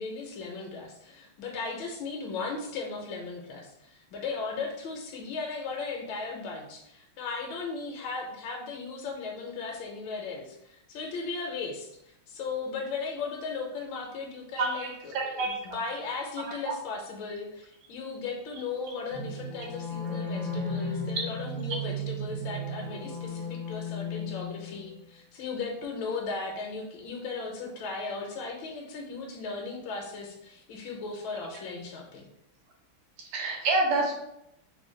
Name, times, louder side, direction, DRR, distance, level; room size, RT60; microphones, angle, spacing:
voice 1, 0.0-32.3, left 4 dB, 75° left, 0 dB, 1.3 m, -37 dB
voice 2, 14.6-15.6 16.5-16.6 33.3-34.2, right 2 dB, 85° right, 2 dB, 1.7 m, -28 dB
sound 1, 19.1-25.0, left 1 dB, 55° left, 0.4 m, -35 dB
3.7 x 2.2 x 3.6 m, 0.79 s
omnidirectional pair, 2.3 m